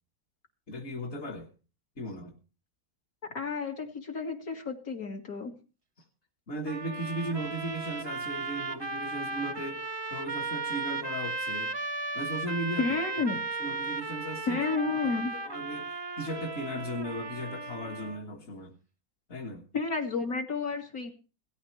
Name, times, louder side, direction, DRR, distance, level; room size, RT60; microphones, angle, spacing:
voice 1, 0.7-1.5 2.0-2.3 6.0-6.1 6.5-9.8 10.1-11.7 12.1-13.0 13.3-14.6 15.0-15.9 16.2-18.7 19.3-19.6, right 1 dB, 45° left, -1 dB, 1.8 m, -37 dB
voice 2, 3.3-5.5 12.8-13.4 14.5-15.3 19.7-21.1, left 4 dB, 60° left, 3 dB, 2.5 m, -31 dB
sound 1, 6.6-18.2, right 3 dB, 25° right, 0.5 m, -36 dB
17.5 x 13.5 x 3.2 m, 0.35 s
omnidirectional pair, 1.7 m